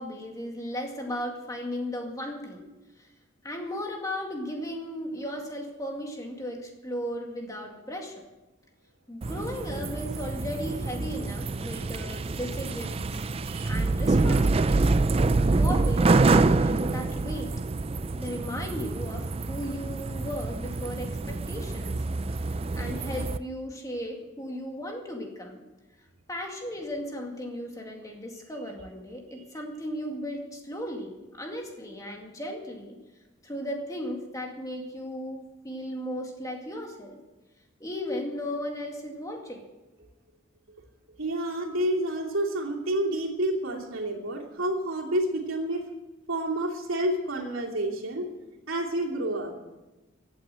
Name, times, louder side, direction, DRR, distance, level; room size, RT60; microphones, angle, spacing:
voice 1, 0.0-2.7 3.0-3.1 3.4-8.2 9.1-13.2 13.7-14.9 15.6-17.5 18.2-21.9 22.8-25.7 26.3-33.0 33.4-37.2 37.8-39.6, equal, 15° left, 1 dB, 2.1 m, -36 dB
sound 1, 9.2-23.4, right 3 dB, 30° right, 0.4 m, -26 dB
voice 2, 41.2-45.8 46.3-48.3 48.7-49.5, right 1 dB, 75° right, -1 dB, 2.9 m, -29 dB
16.0 x 9.0 x 7.7 m, 1.1 s
head